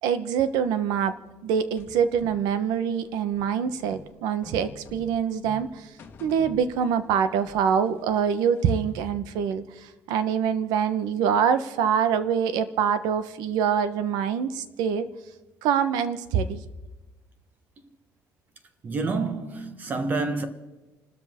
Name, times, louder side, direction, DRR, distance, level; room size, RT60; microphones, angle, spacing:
voice 1, 0.0-1.2 1.4-5.9 6.2-15.1 15.6-16.6, right 7 dB, 75° right, 1.2 m, -25 dB
sound 1, 1.8-7.2 7.5-9.0, left 4 dB, 30° left, 1.4 m, -47 dB
voice 2, 18.8-20.5, right 3 dB, 25° right, 1.3 m, -28 dB
30.0 x 13.0 x 3.7 m
cardioid pair, 180°, 7 cm